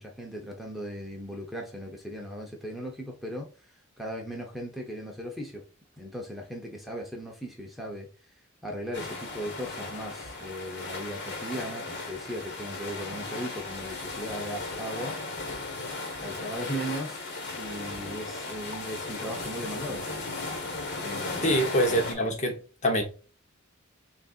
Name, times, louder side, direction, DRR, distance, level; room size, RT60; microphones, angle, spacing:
voice 1, 0.0-5.6 6.0-8.1 8.3-15.2 16.2-20.0 21.0-21.6, equal, ahead, 0.7 m, -38 dB
Playa Urbanova Avion El Altet, 8.9-22.1, left 3 dB, 55° left, 1.3 m, -36 dB
voice 2, 21.4-22.6 22.8-23.0, equal, 35° left, 0.9 m, -24 dB
6.4 x 2.6 x 2.4 m
head